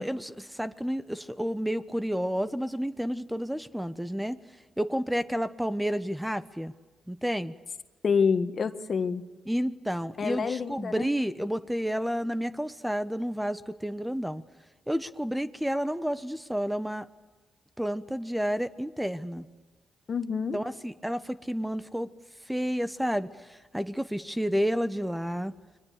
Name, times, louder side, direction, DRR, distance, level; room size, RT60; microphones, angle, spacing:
voice 1, 0.0-4.4 4.8-6.7 7.1-7.5 9.5-14.4 14.9-17.1 17.8-19.4 20.5-22.1 22.5-25.5, equal, 5° right, 13 dB, 1.2 m, -30 dB
voice 2, 8.0-9.2 10.2-11.1 20.1-20.6, left 6 dB, 50° left, 10 dB, 1.6 m, -27 dB
30.0 x 22.5 x 6.7 m, 1.3 s
hypercardioid pair, 45°, 0 cm